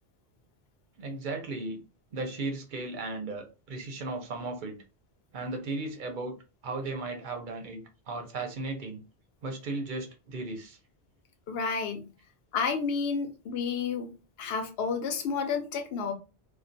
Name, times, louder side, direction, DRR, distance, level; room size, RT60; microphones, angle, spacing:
voice 1, 1.0-1.8 2.1-4.8 5.3-6.3 6.6-9.0 9.4-10.8, right 3 dB, 55° right, 0.7 m, -36 dB
voice 2, 11.5-12.1 12.5-14.1 14.4-16.1, left 5 dB, 70° left, 0.8 m, -30 dB
2.3 x 2.2 x 2.5 m
omnidirectional pair, 1.1 m